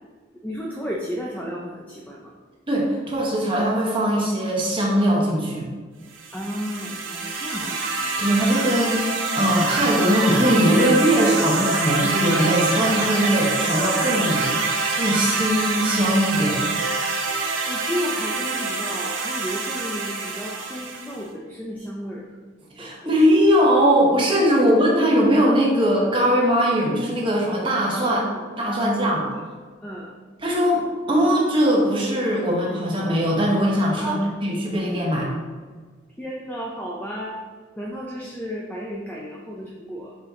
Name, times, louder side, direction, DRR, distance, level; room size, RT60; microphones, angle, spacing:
voice 1, 0.4-2.3 6.3-7.8 17.7-22.3 22.8-23.1 24.5-24.7 27.9-29.4 29.8-30.1 34.0-34.2 36.2-37.4 37.8-40.2, equal, 10° left, -3 dB, 0.4 m, -33 dB
voice 2, 2.7-5.7 8.2-14.4 14.9-16.6 22.8-28.2 28.6-29.2 30.4-35.3, equal, 25° right, -3 dB, 1.0 m, -20 dB
sound 1, 6.1-21.2, right 3 dB, 75° right, 0.8 m, -26 dB
5.1 x 2.9 x 3.6 m, 1.5 s
head